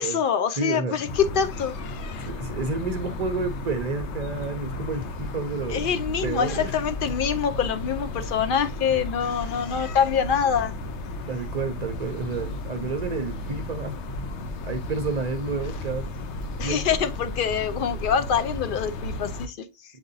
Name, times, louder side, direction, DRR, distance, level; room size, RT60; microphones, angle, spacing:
voice 1, 0.0-2.3 5.7-10.7 16.6-19.7, left 7 dB, 60° left, 0.7 m, -25 dB
voice 2, 0.6-1.0 2.2-5.8 6.2-6.7 11.3-14.0 14.6-16.1 16.6-16.8, right 4 dB, 50° right, 0.5 m, -30 dB
sound 1, 1.1-19.5, left 1 dB, 80° left, 1.0 m, -34 dB
7.3 x 2.6 x 2.5 m
omnidirectional pair, 1.2 m